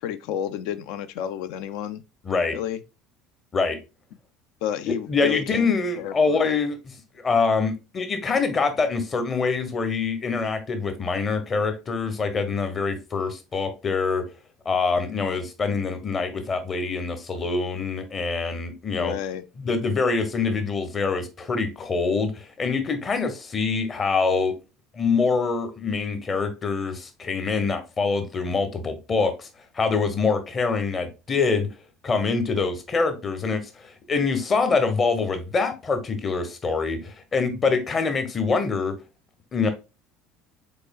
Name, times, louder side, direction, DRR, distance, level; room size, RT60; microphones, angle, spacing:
voice 1, 0.0-2.0 2.5-2.8 4.6-6.5 15.0-15.4 19.0-19.4, left 10 dB, 60° left, 0.4 m, -31 dB
voice 2, 2.2-2.6 3.5-3.8 4.8-14.3 14.6-19.1 19.6-24.5 24.9-29.5 29.7-31.7 32.0-38.9 39.5-39.7, left 4 dB, 30° left, 1.0 m, -25 dB
5.2 x 3.9 x 2.3 m
figure-of-eight pair, 65°, 0 cm